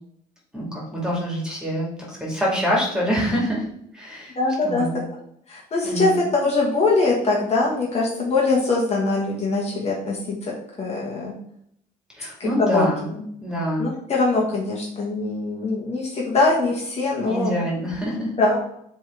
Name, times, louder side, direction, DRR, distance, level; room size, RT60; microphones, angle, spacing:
voice 1, 0.5-3.6 3.9-4.4 4.6-5.0 5.8-6.2 12.2-13.1 13.4-13.9 17.2-18.3, equal, 5° right, -4 dB, 2.4 m, -25 dB
voice 2, 4.4-4.9 5.5-10.5 10.8-11.3 12.4-13.2 13.8-17.5 18.4-18.6, left 3 dB, 40° left, -3 dB, 1.6 m, -22 dB
7.6 x 3.5 x 3.8 m, 0.71 s
cardioid pair, 110°, 17 cm